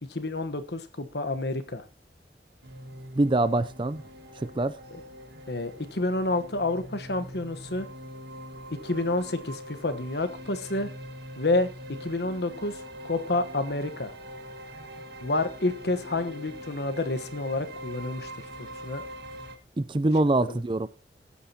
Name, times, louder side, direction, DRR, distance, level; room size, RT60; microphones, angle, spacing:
voice 1, 0.1-1.8 4.9-5.0 5.5-7.9 8.7-10.9 11.4-11.7 12.0-14.1 15.2-18.3 18.8-19.0 20.5-20.6, left 2 dB, 70° left, 1.2 m, -29 dB
sound 1, 2.6-19.5, equal, 65° right, 1.7 m, -43 dB
voice 2, 3.2-4.0 4.4-4.8 19.8-20.9, right 2 dB, 25° right, 0.4 m, -24 dB
19.0 x 8.5 x 2.9 m
head